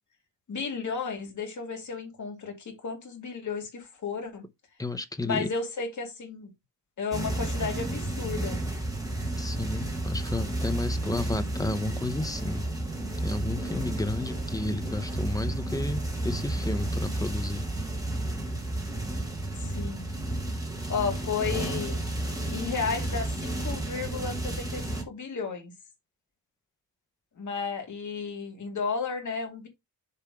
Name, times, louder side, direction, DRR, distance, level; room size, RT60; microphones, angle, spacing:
voice 1, 0.5-4.4 5.2-6.5 7.0-8.6 19.6-20.1 20.9-22.0 22.5-25.7 27.4-29.7, left 5 dB, 40° left, 2.3 m, -33 dB
voice 2, 4.8-5.5 9.4-12.7 13.2-17.6, left 2 dB, 10° left, 0.5 m, -32 dB
sound 1, 7.1-25.0, right 1 dB, 10° right, 1.6 m, -32 dB
6.9 x 3.4 x 4.8 m
wide cardioid pair, 175°, 42 cm